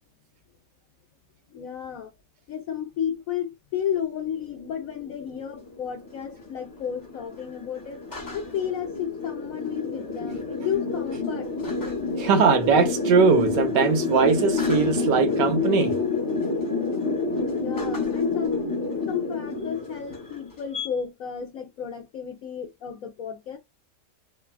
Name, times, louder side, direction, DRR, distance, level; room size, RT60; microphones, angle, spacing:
voice 1, 1.5-2.1 2.5-8.0 8.3-11.5 17.6-18.7 19.1-23.6, left 8 dB, 65° left, 0.9 m, -32 dB
sound 1, 4.5-20.9, left 3 dB, 20° left, 0.6 m, -29 dB
voice 2, 12.2-15.9, right 5 dB, 75° right, 1.3 m, -20 dB
3.2 x 2.2 x 2.2 m
omnidirectional pair, 1.9 m